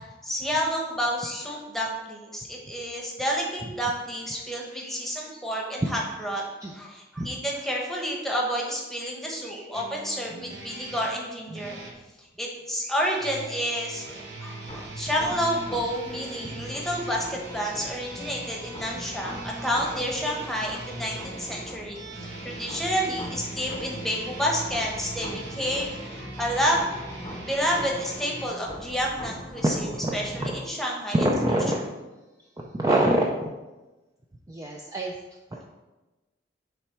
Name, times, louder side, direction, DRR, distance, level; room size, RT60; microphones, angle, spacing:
voice 1, 0.2-6.4 6.7-11.8 12.4-26.9 27.4-29.9 30.1-31.2 31.5-31.6, equal, ahead, -2 dB, 1.0 m, -29 dB
sound 1, 9.7-12.0 13.0-28.5, right 2 dB, 60° right, 1.1 m, -41 dB
sound 2, 14.7-30.7, equal, 25° left, 0.7 m, -41 dB
voice 2, 29.6-30.6 31.1-31.8 32.7-33.5 34.5-35.1 35.5-35.6, right 1 dB, 20° right, -1 dB, 0.4 m, -25 dB
7.1 x 3.4 x 4.5 m, 1.1 s
head